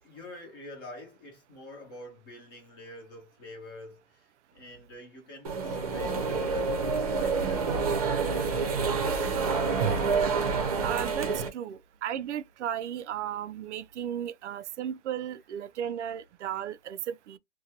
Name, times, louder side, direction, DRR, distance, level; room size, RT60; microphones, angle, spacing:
voice 1, 0.0-9.6, left 1 dB, 20° left, 0.7 m, -47 dB
sound 1, 5.4-11.5, right 4 dB, 35° right, 0.7 m, -28 dB
voice 2, 10.8-17.4, right 10 dB, 90° right, 0.5 m, -35 dB
2.6 x 2.2 x 2.8 m
hypercardioid pair, 175°, 34 cm